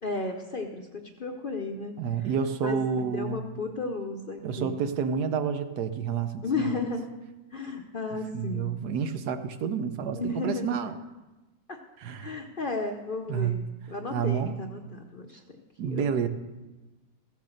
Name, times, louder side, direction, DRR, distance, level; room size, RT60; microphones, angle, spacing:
voice 1, 0.0-2.3 2.6-4.8 6.4-7.1 7.5-8.7 10.1-10.8 11.7-11.8 12.2-16.1, left 3 dB, 45° left, 3 dB, 0.7 m, -34 dB
voice 2, 2.0-3.4 4.4-6.4 8.3-11.0 12.0-12.3 13.3-13.6 14.1-14.5 15.8-16.3, right 7 dB, 80° right, 9 dB, 1.3 m, -29 dB
15.0 x 6.6 x 6.5 m, 1.1 s
omnidirectional pair, 1.7 m